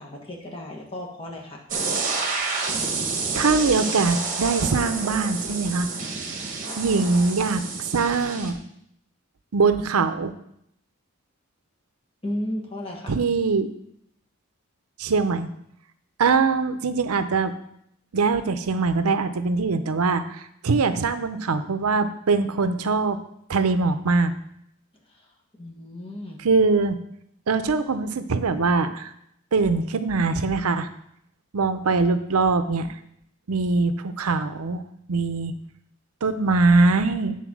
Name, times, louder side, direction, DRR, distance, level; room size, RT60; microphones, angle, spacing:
voice 1, 0.0-1.6 6.6-6.8 12.2-13.1 25.1-25.3 25.5-26.4, left 1 dB, 25° left, -1 dB, 1.4 m, -34 dB
sound 1, 1.7-8.5, right 4 dB, 35° right, 1.1 m, -29 dB
voice 2, 3.3-5.9 6.8-8.6 9.5-10.3 13.1-13.7 15.0-15.5 16.2-17.5 18.1-23.2 23.5-24.3 26.4-27.0 27.5-29.1 29.5-30.9 31.5-32.9 33.5-34.8 35.1-35.5 36.2-37.4, right 4 dB, 90° right, 11 dB, 0.6 m, -22 dB
9.2 x 4.2 x 6.1 m, 0.75 s
head